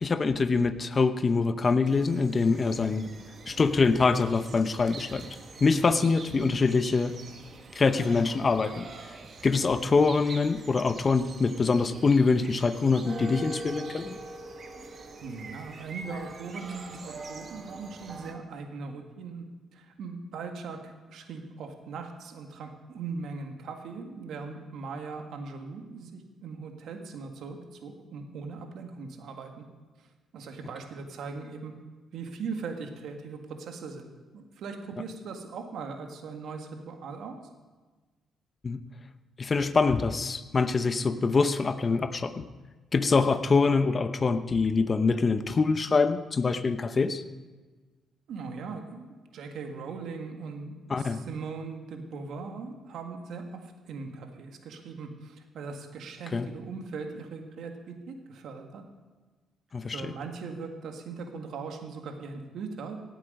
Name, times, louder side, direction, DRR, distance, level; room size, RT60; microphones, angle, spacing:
voice 1, 0.0-3.0 3.5-5.2 5.6-7.1 7.7-8.9 9.4-14.2 38.6-38.8 39.4-42.5 42.9-47.2 50.9-51.2 56.3-56.5 59.7-60.1, left 4 dB, 35° left, 11 dB, 0.8 m, -24 dB
sound 1, 1.9-18.3, right 3 dB, 45° right, 1.5 m, -44 dB
voice 2, 15.2-19.4 19.7-29.6 30.3-31.7 32.1-37.4 48.3-49.0 49.3-58.8 59.9-63.0, right 4 dB, 75° right, 4 dB, 1.7 m, -39 dB
17.5 x 8.0 x 5.4 m, 1.3 s
cardioid pair, 90°, 0 cm